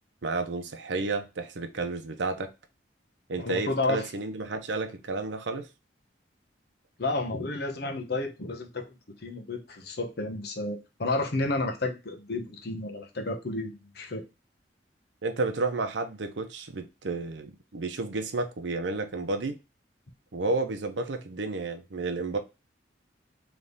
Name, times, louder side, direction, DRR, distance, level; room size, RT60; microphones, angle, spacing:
voice 1, 0.2-2.5 3.3-5.7 15.2-19.5 20.3-22.4, right 3 dB, 85° right, 0.7 m, -31 dB
voice 2, 3.4-4.1 7.0-8.9 9.2-14.2, left 2 dB, 60° left, 0.9 m, -31 dB
3.5 x 3.2 x 3.9 m
head